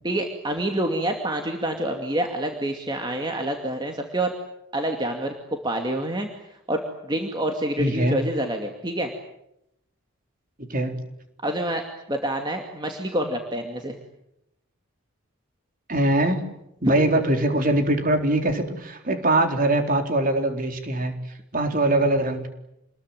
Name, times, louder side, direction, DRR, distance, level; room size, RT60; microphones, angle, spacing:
voice 1, 0.0-4.3 4.7-5.3 5.6-6.3 6.7-9.1 11.4-11.8 12.1-14.0, right 1 dB, 20° right, 3 dB, 2.4 m, -27 dB
voice 2, 7.8-8.2 10.6-11.0 15.9-16.4 16.8-21.1 21.5-22.5, right 1 dB, 40° right, 5 dB, 4.0 m, -22 dB
28.5 x 21.5 x 9.3 m, 0.81 s
head